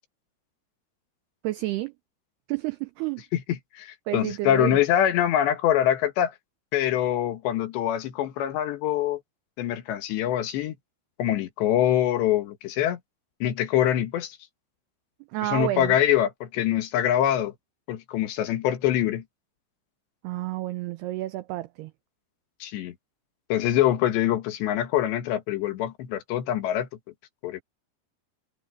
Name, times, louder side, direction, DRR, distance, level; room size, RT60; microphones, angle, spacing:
voice 1, 1.4-1.9 2.5-3.2 4.1-4.8 15.3-16.0 20.2-21.9, right 17 dB, 90° right, 2.3 m, -30 dB
voice 2, 3.3-6.3 6.7-9.2 9.6-10.7 11.2-13.0 13.4-14.4 15.4-17.5 17.9-19.2 22.6-22.9 23.5-26.9 27.4-27.6, left 11 dB, 70° left, 3.5 m, -24 dB
omnidirectional pair, 5.5 m